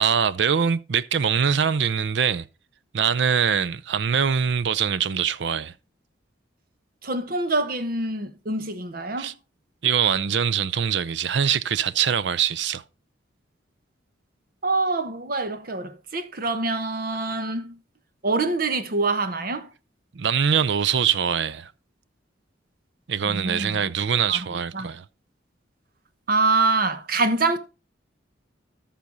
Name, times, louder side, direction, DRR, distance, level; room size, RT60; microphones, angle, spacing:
voice 1, 0.0-2.5 2.9-5.7 9.2-9.3 9.8-12.8 20.1-21.7 23.1-25.0, right 7 dB, 65° right, 0.5 m, -23 dB
voice 2, 7.0-9.3 14.6-17.7 18.2-19.7 23.2-23.9 24.3-24.5 24.7-24.9 26.3-27.6, right 3 dB, 50° right, 1.1 m, -25 dB
13.5 x 5.9 x 3.9 m
head